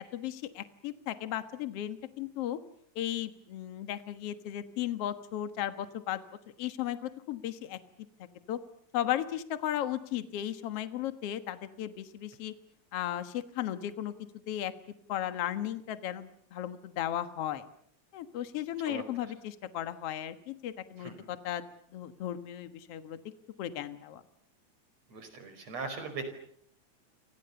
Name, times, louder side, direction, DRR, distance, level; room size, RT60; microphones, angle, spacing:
voice 1, 0.0-2.6 3.0-6.2 6.6-7.8 8.5-8.6 8.9-12.5 12.9-14.1 14.5-14.7 15.1-17.6 18.1-21.6 21.9-23.2 23.6-24.2, left 12 dB, 55° left, 10 dB, 2.3 m, -35 dB
voice 2, 25.1-26.2, right 4 dB, 55° right, 9 dB, 6.1 m, -39 dB
30.0 x 25.5 x 7.0 m, 0.67 s
omnidirectional pair, 3.5 m